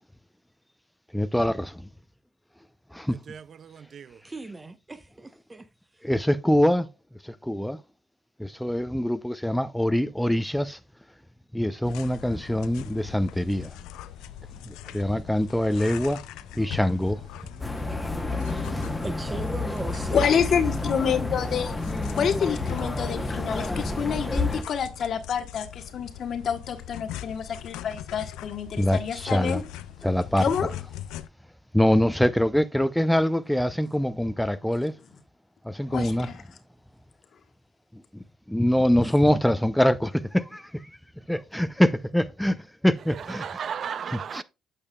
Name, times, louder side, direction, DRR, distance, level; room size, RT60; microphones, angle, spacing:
voice 1, 1.1-1.9 2.9-3.2 6.0-6.9 7.2-7.8 8.4-10.8 11.5-13.7 14.7-16.2 16.6-17.2 28.8-29.6 30.0-30.4 31.7-34.9 35.6-36.3 38.5-40.8 41.3-42.6 42.8-43.4 44.3-44.4, left 1 dB, 5° left, 0.6 m, -24 dB
voice 2, 3.1-4.2 16.6-16.8 17.4-19.0 43.1-44.4, right 7 dB, 55° right, 0.4 m, -38 dB
voice 3, 4.2-5.7 19.0-20.3, right 3 dB, 25° right, 0.9 m, -37 dB
sound 1, 11.8-31.3, left 12 dB, 80° left, 0.4 m, -41 dB
sound 2, 17.6-24.6, left 2 dB, 20° left, 1.2 m, -30 dB
voice 4, 20.1-21.7 22.1-29.6 30.4-30.7 35.9-36.4, left 7 dB, 60° left, 1.2 m, -28 dB
8.6 x 6.5 x 2.3 m
hypercardioid pair, 50°, 0 cm